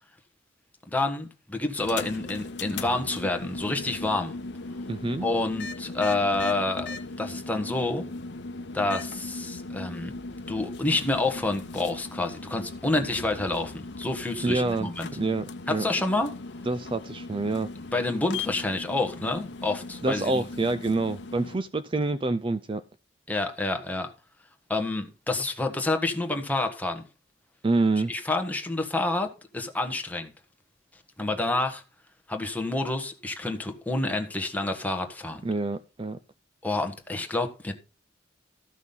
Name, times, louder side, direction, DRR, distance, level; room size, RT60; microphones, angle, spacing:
voice 1, 0.9-4.3 5.2-8.1 8.7-10.1 10.5-15.1 15.7-16.3 17.9-20.5 23.3-24.1 24.7-27.0 28.1-30.3 31.2-31.8 32.3-35.5 36.6-37.7, left 2 dB, 10° left, 1.5 m, -28 dB
sound 1, 1.8-21.6, left 3 dB, 60° left, 1.0 m, -38 dB
voice 2, 4.9-5.3 14.4-14.9 15.2-15.4 15.7-15.8 16.7-17.7 20.0-22.8 27.6-28.1 35.4-36.2, right 2 dB, 25° right, 0.4 m, -26 dB
14.0 x 6.1 x 5.5 m
head